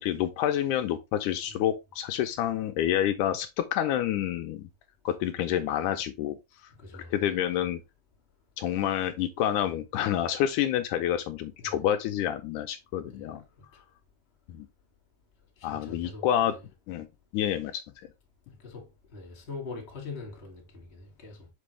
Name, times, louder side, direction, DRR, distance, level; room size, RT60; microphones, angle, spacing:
voice 1, 0.0-4.7 5.1-6.4 6.9-7.8 8.6-13.4 14.5-14.7 15.6-16.6 16.9-17.1 17.3-17.8, left 11 dB, 80° left, 2.0 m, -28 dB
voice 2, 6.7-7.4 11.6-11.8 13.0-13.3 13.6-13.7 15.6-16.5 18.6-21.5, left 4 dB, 25° left, 1.9 m, -43 dB
6.1 x 5.4 x 3.2 m
omnidirectional pair, 3.7 m